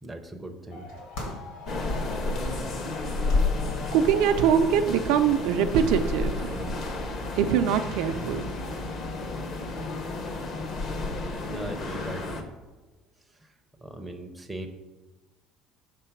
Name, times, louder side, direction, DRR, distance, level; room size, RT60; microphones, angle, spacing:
voice 1, 0.0-0.9 3.8-3.9 11.5-12.5 13.4-13.5 13.8-14.7, right 1 dB, 5° right, 4 dB, 0.5 m, -39 dB
sound 1, 0.7-10.8, left 2 dB, 75° left, 1.9 m, -44 dB
sound 2, 1.7-12.4, left 3 dB, 40° left, 0.7 m, -31 dB
voice 2, 3.9-6.8 7.3-8.4, right 8 dB, 75° right, 8 dB, 0.5 m, -23 dB
6.7 x 3.9 x 5.8 m, 1.2 s
cardioid pair, 160°, 0 cm